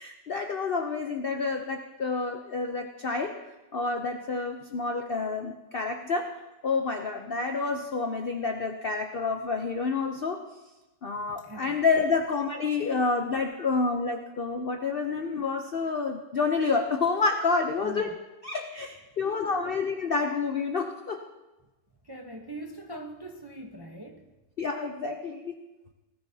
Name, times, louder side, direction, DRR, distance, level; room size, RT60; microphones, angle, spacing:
voice 1, 0.0-3.4 3.7-6.4 6.6-10.4 11.0-18.1 18.4-21.3 24.6-25.6, left 4 dB, 60° left, 4 dB, 0.6 m, -29 dB
voice 2, 11.3-11.8 13.6-13.8 17.8-18.2 19.2-19.8 22.0-24.3, right 2 dB, 25° right, 2 dB, 0.5 m, -42 dB
19.0 x 13.5 x 2.8 m, 1.1 s
omnidirectional pair, 1.8 m